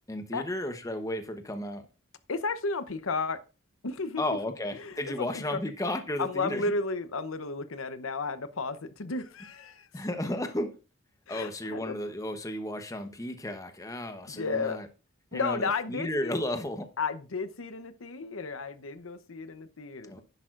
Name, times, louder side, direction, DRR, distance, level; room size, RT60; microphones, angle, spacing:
voice 1, 0.1-1.9 4.2-6.7 9.9-10.7 11.3-14.9 15.3-16.9 20.1-20.2, left 1 dB, 15° left, 7 dB, 0.9 m, -33 dB
voice 2, 2.3-3.4 3.8-4.2 4.7-5.6 6.2-9.9 11.3-12.0 14.3-14.8 15.3-16.3 17.0-20.2, left 4 dB, 85° left, 11 dB, 0.8 m, -33 dB
11.0 x 10.0 x 2.5 m, 0.32 s
head